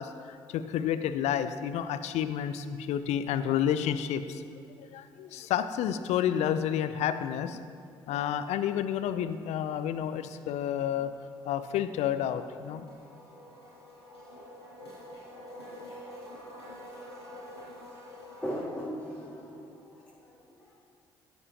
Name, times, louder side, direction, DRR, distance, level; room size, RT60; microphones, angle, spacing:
voice 1, 0.0-4.4 4.9-7.6 8.1-11.1 11.5-12.9, left 9 dB, 60° left, 11 dB, 0.6 m, -30 dB
sound 1, 11.0-18.6, equal, 90° left, 1.8 m, -48 dB
voice 2, 18.4-20.8, equal, 10° left, -6 dB, 2.3 m, -39 dB
14.5 x 9.5 x 3.0 m, 2.5 s
figure-of-eight pair, 45°, 13 cm